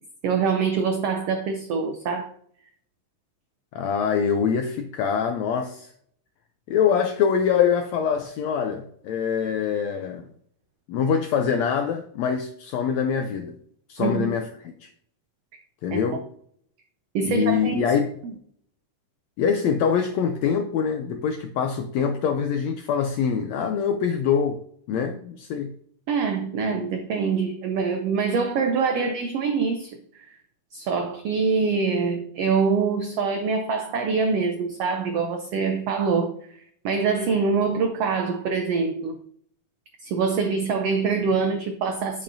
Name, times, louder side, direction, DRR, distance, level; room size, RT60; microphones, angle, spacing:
voice 1, 0.2-2.3 14.0-14.3 15.9-16.0 17.1-17.9 18.2-18.3 26.1-30.0 30.7-36.3 36.8-39.2 40.0-42.2, right 5 dB, 90° right, 1.3 m, -24 dB
voice 2, 3.7-5.9 6.7-10.3 10.9-13.6 13.9-14.9 15.8-16.2 17.2-18.1 19.4-24.6 24.9-25.7, left 7 dB, 85° left, 1.5 m, -24 dB
8.9 x 8.4 x 2.7 m
omnidirectional pair, 3.7 m